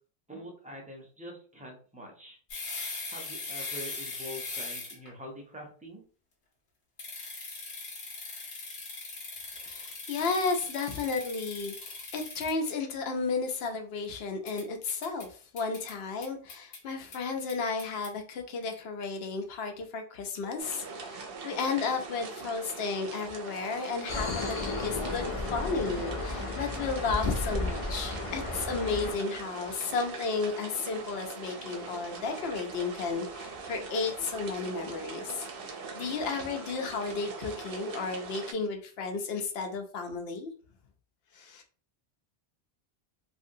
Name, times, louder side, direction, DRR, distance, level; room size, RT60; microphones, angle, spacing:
voice 1, 0.3-2.4 3.1-6.0, equal, 10° right, 0 dB, 0.5 m, -45 dB
sound 1, 2.5-5.1 7.0-12.7 14.5-15.3 15.6-15.9 16.2-16.8 17.1-17.2 17.5-18.1, left 3 dB, 85° left, 1.2 m, -40 dB
voice 2, 9.6-25.2 25.5-40.5 41.3-41.6, left 4 dB, 70° left, 4 dB, 0.9 m, -33 dB
sound 2, 20.6-38.5, right 4 dB, 65° right, 0.7 m, -42 dB
sound 3, 24.1-29.2, left 2 dB, 45° left, 0.4 m, -33 dB
2.7 x 2.6 x 2.6 m, 0.41 s
omnidirectional pair, 1.1 m